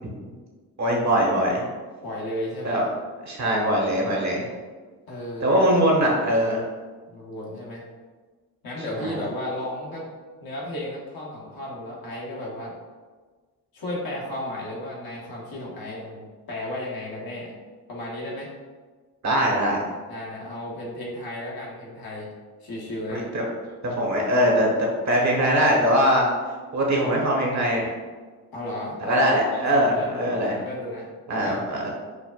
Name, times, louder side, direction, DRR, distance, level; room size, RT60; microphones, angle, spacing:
voice 1, 0.8-1.6 2.6-2.8 3.2-4.5 5.4-6.6 9.0-9.2 19.2-19.8 23.1-23.4 23.8-24.7 25.1-26.3 26.7-28.0 29.0-30.6 31.3-31.9, equal, 45° right, -2 dB, 1.1 m, -22 dB
voice 2, 2.0-2.9 5.1-5.5 7.1-7.8 8.6-10.0 10.4-12.7 13.7-17.6 17.9-18.5 20.1-22.3 22.6-23.3 28.5-31.6, left 1 dB, 65° left, -4 dB, 1.1 m, -34 dB
4.9 x 2.1 x 2.3 m, 1.4 s
supercardioid pair, 50°, 39 cm